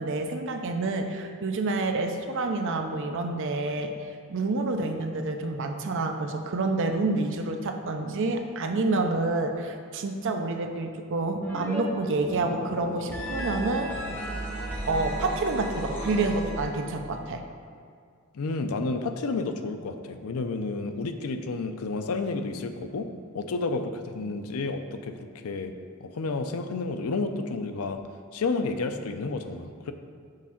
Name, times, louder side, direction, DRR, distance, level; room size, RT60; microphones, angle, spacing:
voice 1, 0.0-3.9 4.3-13.9 14.9-17.4, right 3 dB, 60° right, 5 dB, 0.5 m, -28 dB
sound 1, 11.4-11.8 12.1-17.0, equal, 10° left, 1.0 m, -34 dB
voice 2, 18.3-25.7 26.0-28.0 28.3-29.9, left 3 dB, 80° left, 8 dB, 0.5 m, -31 dB
6.5 x 3.6 x 5.7 m, 2.2 s
head